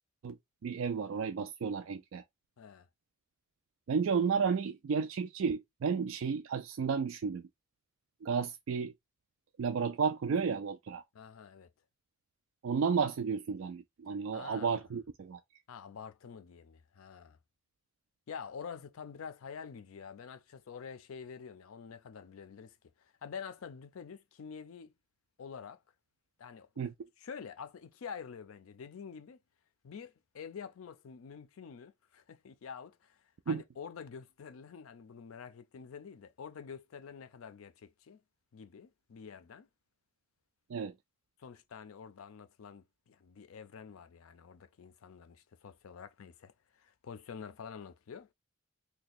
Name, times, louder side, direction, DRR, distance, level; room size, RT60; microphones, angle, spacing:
voice 1, 0.6-2.2 3.9-7.4 8.2-8.9 9.6-11.0 12.6-15.4 26.8-26.9 33.5-33.6 40.7-40.9, right 6 dB, 65° right, 0.3 m, -32 dB
voice 2, 11.1-11.7 14.3-14.8 15.7-17.4 18.3-24.9 25.4-25.8 26.4-26.7 27.2-29.4 29.8-33.2 33.5-38.2 38.5-39.7 41.4-48.3, left 6 dB, 75° left, 0.4 m, -47 dB
2.8 x 2.2 x 4.0 m
head